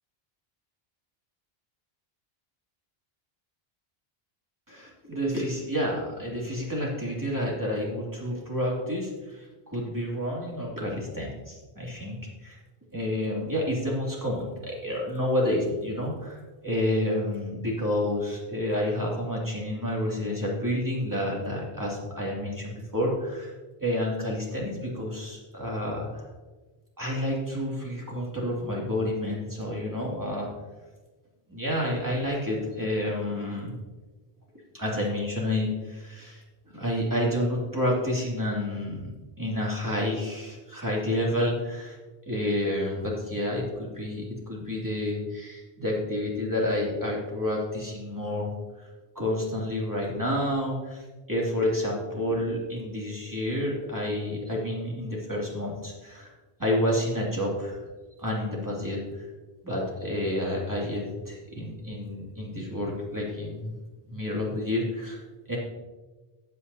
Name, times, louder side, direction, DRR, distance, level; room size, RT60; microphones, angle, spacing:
voice 1, 4.7-12.6 12.9-23.5 23.8-26.2 27.0-30.5 31.5-33.7 34.7-36.4 36.7-39.1 39.4-42.0 42.3-48.5 48.8-48.9 49.1-56.3 56.6-57.8 58.2-59.0 59.6-63.8 64.1-65.2 65.5-65.6, left 1 dB, 20° right, -4 dB, 2.5 m, -29 dB
14.5 x 8.3 x 2.8 m, 1.3 s
omnidirectional pair, 1.0 m